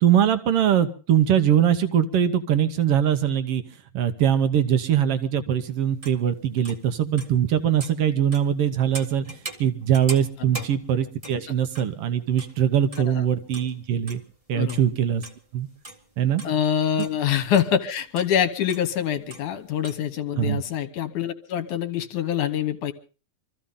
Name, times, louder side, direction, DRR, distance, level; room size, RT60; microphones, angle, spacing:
voice 1, 0.0-3.6 3.9-9.2 9.6-14.2 14.5-15.2 15.5-15.7 16.2-16.4 20.4-20.6, right 9 dB, 70° right, 9 dB, 1.4 m, -22 dB
sound 1, 5.6-5.7 6.0-6.2 6.6-7.4 7.8-12.6 12.9-13.1 13.4-14.2 14.5-15.5 15.8-17.7 18.2-18.4 18.7-18.9 19.3-19.5 19.8-20.0, right 2 dB, 30° right, 0.6 m, -41 dB
voice 2, 16.4-22.9, left 9 dB, 70° left, 9 dB, 2.4 m, -25 dB
25.5 x 14.5 x 3.7 m, 0.36 s
omnidirectional pair, 4.0 m